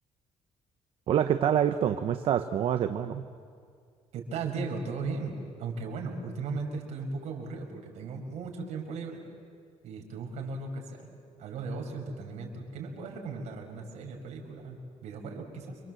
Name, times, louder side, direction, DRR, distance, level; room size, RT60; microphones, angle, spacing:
voice 1, 1.1-3.2, right 9 dB, 50° right, 8 dB, 0.9 m, -26 dB
voice 2, 4.1-9.2 9.8-11.1 11.4-15.8, right 4 dB, 75° right, 1 dB, 5.5 m, -37 dB
29.0 x 24.5 x 7.7 m, 2.1 s
cardioid pair, 175°, 12 cm